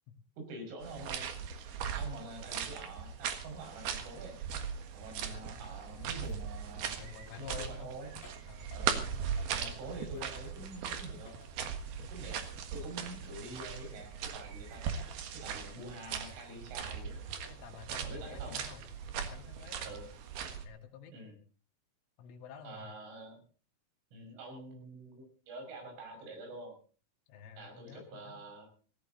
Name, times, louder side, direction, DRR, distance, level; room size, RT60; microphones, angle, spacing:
voice 1, 0.4-1.3 2.0-4.4 4.9-6.9 7.3-8.1 8.7-9.0 9.5-11.3 12.0-14.8 15.3-17.2 18.0-18.6 19.8-20.1 21.1-21.3 22.6-23.4 24.1-26.8 27.6-28.7, right 2 dB, 80° right, 3 dB, 8.0 m, -46 dB
sound 1, 0.8-20.7, right 7 dB, 60° right, 3.2 m, -39 dB
voice 2, 5.2-5.6 7.0-7.9 8.5-9.2 17.6-20.0 20.6-21.1 22.2-22.9 27.3-28.4, left 8 dB, 90° left, 5 dB, 4.7 m, -50 dB
sound 2, 5.2-9.1 9.4-12.2 12.5-14.1 14.7-15.3 15.7-16.3 16.7-17.6 18.0-18.4, left 4 dB, 55° left, 4.2 m, -60 dB
17.5 x 17.0 x 4.0 m, 0.39 s
omnidirectional pair, 5.5 m